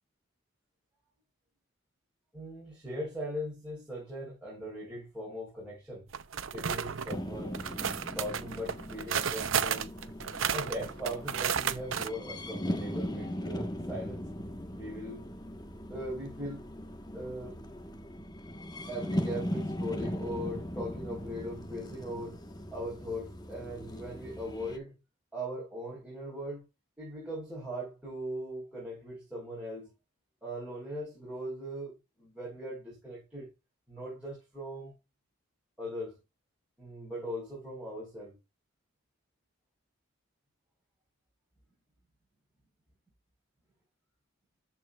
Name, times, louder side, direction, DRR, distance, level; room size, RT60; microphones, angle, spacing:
voice 1, 2.3-6.0 6.5-7.7 8.1-10.0 10.5-14.2 14.7-15.2 15.9-16.7 17.1-17.6 18.9-22.4 22.7-24.9 25.3-26.6 27.0-29.9 30.4-33.5 33.9-34.9 35.8-36.2 36.8-38.4, equal, 5° right, 4.7 m, -39 dB
sound 1, 6.1-7.2 7.5-12.1, right 7 dB, 70° right, 0.8 m, -32 dB
sound 2, 7.1-24.8, equal, 20° left, 1.4 m, -39 dB
13.5 x 4.8 x 2.5 m
head